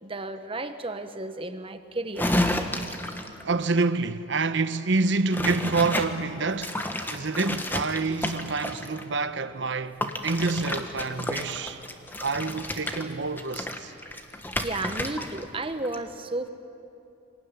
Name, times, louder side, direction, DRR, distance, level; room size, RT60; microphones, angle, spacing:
voice 1, 0.0-2.4 14.6-16.5, right 2 dB, 25° right, 1.1 m, -33 dB
sound 1, 2.2-3.4 5.3-6.1 6.6-9.0 10.0-15.4 15.7-16.0, left 1 dB, 10° left, 1.3 m, -31 dB
voice 2, 3.4-6.8 7.1-11.8 12.2-13.9, right 3 dB, 65° right, 1.0 m, -27 dB
25.5 x 18.5 x 9.8 m
head